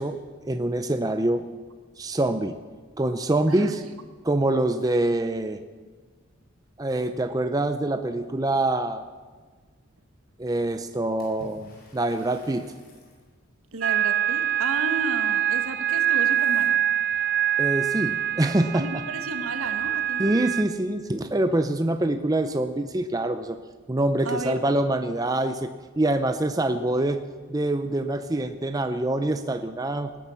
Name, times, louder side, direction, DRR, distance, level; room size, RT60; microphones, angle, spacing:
voice 1, 0.0-1.4 2.0-2.6 3.0-3.8 4.2-5.6 6.8-9.0 10.4-12.7 17.6-19.0 20.2-23.6 23.9-27.2 27.5-30.1, right 1 dB, 15° right, 8 dB, 0.5 m, -25 dB
Water / Splash splatter, 11.2-13.3, equal, 45° left, 4.8 m, -50 dB
voice 2, 13.7-16.8 18.7-20.3 24.2-24.6, right 2 dB, 85° right, 7 dB, 1.4 m, -33 dB
sound 1, 13.8-20.6, right 11 dB, 50° right, 0.8 m, -25 dB
18.5 x 10.0 x 6.9 m, 1.4 s
head